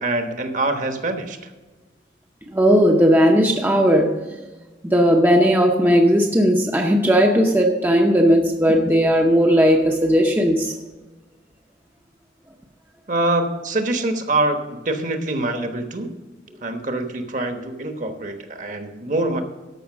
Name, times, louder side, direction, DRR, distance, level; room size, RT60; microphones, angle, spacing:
voice 1, 0.0-1.4 13.1-14.6 14.8-16.1 16.6-19.4, right 2 dB, 45° right, 6 dB, 1.1 m, -24 dB
voice 2, 2.5-4.3 4.8-10.7, equal, 10° right, 1 dB, 0.7 m, -16 dB
13.0 x 5.7 x 6.1 m, 1.3 s
head